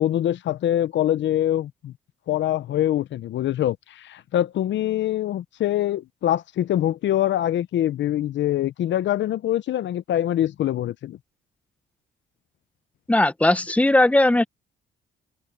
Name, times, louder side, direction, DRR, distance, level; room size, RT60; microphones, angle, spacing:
voice 1, 0.0-1.9 2.3-11.2, left 12 dB, 65° left, 0.7 m, -24 dB
voice 2, 13.1-14.4, left 1 dB, 5° left, 1.0 m, -18 dB
cardioid pair, 90°, 20 cm